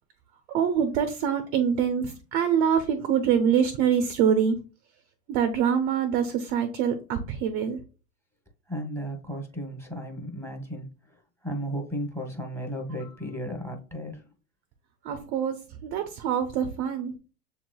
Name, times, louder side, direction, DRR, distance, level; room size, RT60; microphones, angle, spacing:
voice 1, 0.5-4.6 5.3-7.8 15.0-15.6 15.8-17.1, right 8 dB, 25° right, 8 dB, 0.3 m, -25 dB
voice 2, 8.7-10.9 11.4-14.2, equal, 5° left, 4 dB, 0.8 m, -34 dB
6.9 x 3.0 x 2.2 m, 0.35 s
hypercardioid pair, 105°, 44 cm